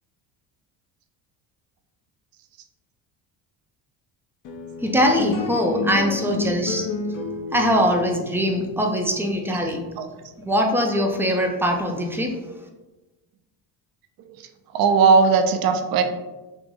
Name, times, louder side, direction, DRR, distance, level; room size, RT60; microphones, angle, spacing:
sound 1, 4.4-11.1, left 3 dB, 45° left, 0.6 m, -31 dB
voice 1, 4.8-6.9 7.5-9.9 10.4-12.4, equal, 5° right, 2 dB, 0.4 m, -22 dB
voice 2, 14.7-16.0, right 5 dB, 55° right, 7 dB, 0.6 m, -18 dB
3.0 x 2.5 x 3.6 m, 1.1 s
supercardioid pair, 85°, 45 cm